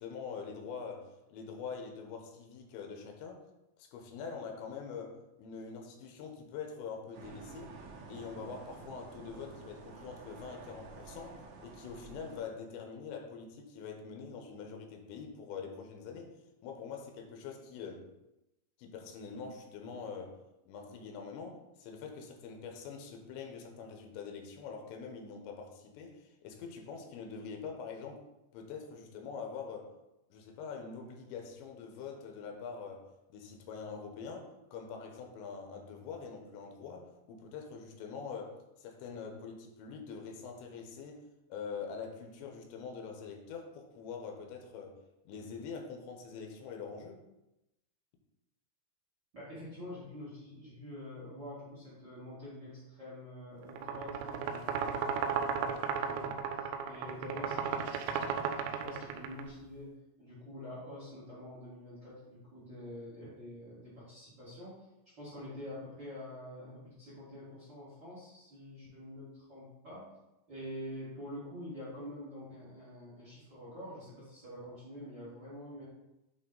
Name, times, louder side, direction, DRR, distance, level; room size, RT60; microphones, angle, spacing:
voice 1, 0.0-3.4 3.8-7.7 8.1-16.4 16.6-18.1 18.8-20.4 20.7-28.2 28.5-29.9 30.3-45.0 45.3-47.2, left 5 dB, 90° left, 3 dB, 3.1 m, -44 dB
sound 1, 7.1-12.4, right 3 dB, 70° right, 2.3 m, -50 dB
voice 2, 49.3-58.1 58.6-59.9 60.2-64.8 65.2-70.1 70.5-75.8, left 1 dB, 40° right, -9 dB, 1.6 m, -46 dB
sound 2, 53.7-59.4, right 6 dB, 90° right, 2.9 m, -35 dB
8.2 x 3.5 x 3.8 m, 0.94 s
omnidirectional pair, 5.1 m